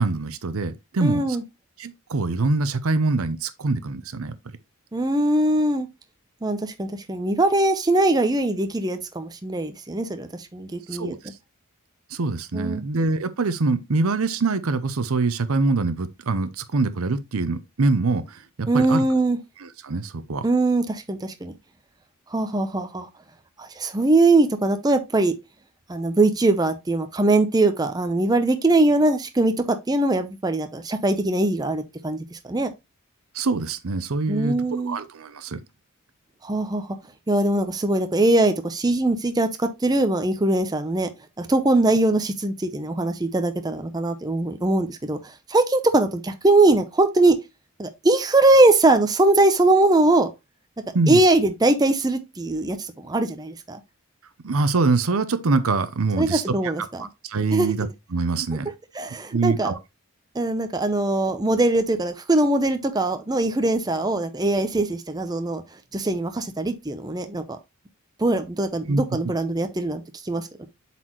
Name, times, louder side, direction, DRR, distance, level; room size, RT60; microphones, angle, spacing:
voice 1, 0.0-1.4 1.8-4.4 10.9-11.3 12.1-19.0 19.6-20.5 33.3-35.6 50.9-51.2 54.4-58.7 59.3-59.8 68.9-69.0, right 3 dB, 70° right, 0.7 m, -24 dB
voice 2, 1.0-1.4 4.9-5.9 6.4-11.2 12.5-12.8 18.7-19.4 20.4-21.5 22.3-23.1 23.6-25.4 25.9-32.7 34.3-35.0 36.4-36.9 37.3-41.1 41.4-47.4 47.8-50.3 51.1-53.8 56.2-57.1 57.5-57.7 58.9-59.7 60.3-65.6 65.9-67.4 68.2-70.7, right 2 dB, 15° right, 0.6 m, -21 dB
7.6 x 4.2 x 3.0 m
head